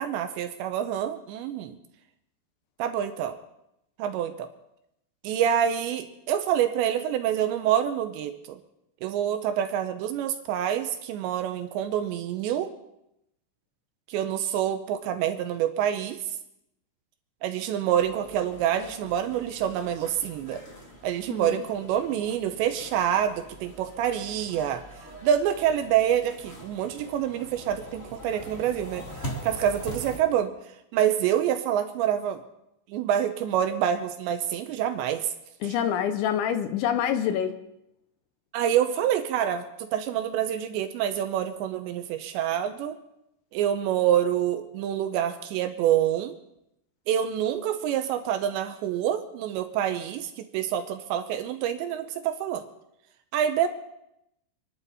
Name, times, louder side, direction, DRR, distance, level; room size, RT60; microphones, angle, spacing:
voice 1, 0.0-1.8 2.8-3.4 4.0-4.5 5.2-8.6 9.0-12.7 14.1-16.2 17.4-20.6 21.0-24.8 25.2-29.1 29.4-30.5 30.9-32.4 32.9-35.3 38.5-43.0 43.5-46.3 47.1-52.6 53.3-53.7, right 10 dB, 80° right, 8 dB, 2.8 m, -27 dB
sound 1, 18.0-30.2, equal, 40° left, 0.9 m, -43 dB
voice 2, 21.3-21.6 35.6-37.6, left 9 dB, 80° left, 9 dB, 3.0 m, -26 dB
27.0 x 11.5 x 4.1 m, 0.83 s
omnidirectional pair, 5.6 m